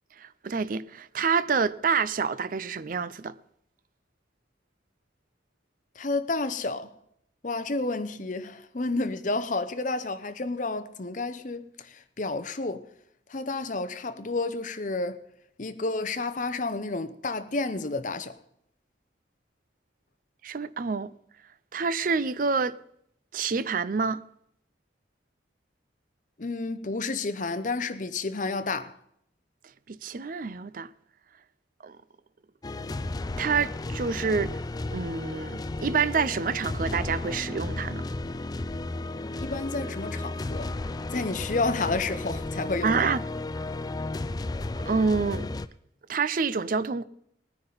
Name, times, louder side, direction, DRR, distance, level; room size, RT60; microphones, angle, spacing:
voice 1, 0.2-3.4 20.4-21.1 21.7-22.7 23.3-24.2 29.9-30.9 31.8-32.0 33.4-34.6 34.9-38.0 42.8-43.2 44.9-45.5 46.1-47.0, right 5 dB, 50° right, 0.5 m, -27 dB
voice 2, 6.0-6.9 7.4-12.8 13.3-15.2 15.6-18.4 26.4-28.9 39.4-40.7 41.1-43.1, left 3 dB, 45° left, 0.8 m, -30 dB
sound 1, 32.6-45.7, left 2 dB, 20° left, 0.4 m, -33 dB
20.0 x 9.7 x 4.0 m
head